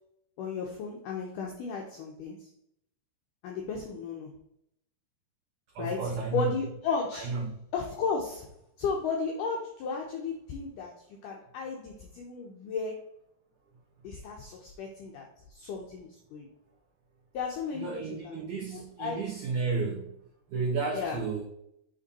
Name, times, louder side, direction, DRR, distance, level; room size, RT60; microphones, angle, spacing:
voice 1, 0.4-2.5 3.4-4.4 5.8-7.4 7.7-8.5 8.8-10.9 11.2-13.0 14.0-16.5 17.3-18.4 18.7-19.2 20.9-21.2, left 5 dB, 85° left, 0 dB, 1.8 m, -34 dB
voice 2, 5.7-6.5 7.1-7.5 17.7-20.1 20.5-21.4, right 4 dB, 70° right, -2 dB, 1.9 m, -32 dB
7.8 x 3.7 x 4.1 m, 0.74 s
omnidirectional pair, 4.9 m